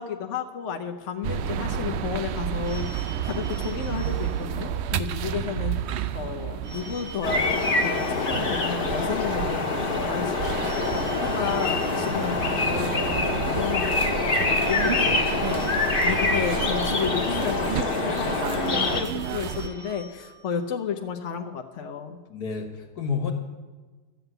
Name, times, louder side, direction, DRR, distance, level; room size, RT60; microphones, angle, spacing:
voice 1, 0.0-5.8 6.1-22.2, left 7 dB, 55° left, 3 dB, 1.1 m, -32 dB
sound 1, 1.2-19.7, right 9 dB, 85° right, 0.5 m, -32 dB
Telephone, 2.6-5.1 6.6-9.1 10.6-13.1 14.6-17.1 18.6-21.1, right 2 dB, 55° right, 2.1 m, -45 dB
sound 2, 7.2-19.0, left 3 dB, 35° left, 1.6 m, -25 dB
voice 2, 22.3-23.3, left 5 dB, 75° left, 5 dB, 2.0 m, -30 dB
13.0 x 7.8 x 8.0 m, 1.3 s
omnidirectional pair, 1.7 m